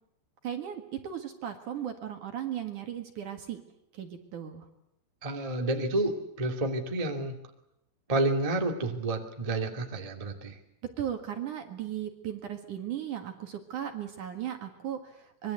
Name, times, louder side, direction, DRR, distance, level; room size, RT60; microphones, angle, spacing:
voice 1, 0.4-3.6 3.9-4.6 11.0-15.5, right 10 dB, 55° right, 6 dB, 2.8 m, -36 dB
voice 2, 5.2-7.3 8.1-10.6, right 2 dB, 15° right, 3 dB, 1.5 m, -30 dB
25.0 x 23.0 x 8.2 m, 0.80 s
omnidirectional pair, 5.0 m